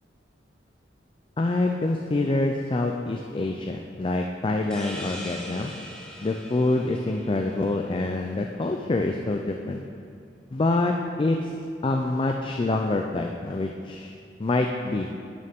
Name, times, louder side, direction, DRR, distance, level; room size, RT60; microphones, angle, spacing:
voice 1, 1.4-5.7 6.2-9.8 10.5-11.5 11.8-14.1 14.4-15.1, left 2 dB, 30° left, 3 dB, 0.4 m, -26 dB
sound 1, 4.7-8.2, equal, 5° left, 0.9 m, -41 dB
10.5 x 6.5 x 3.6 m, 2.3 s
head